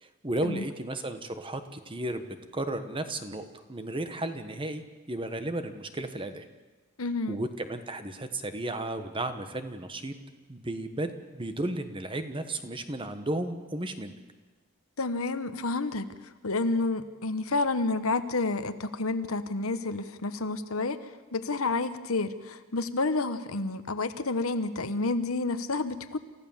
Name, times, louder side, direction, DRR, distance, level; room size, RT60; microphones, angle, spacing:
voice 1, 0.0-6.4 7.3-10.1 10.5-14.2, right 1 dB, 25° right, 9 dB, 1.3 m, -34 dB
voice 2, 7.0-7.4 15.0-16.1 16.4-21.0 21.3-26.2, left 3 dB, 75° left, 11 dB, 1.1 m, -29 dB
28.5 x 15.0 x 7.3 m, 1.3 s
head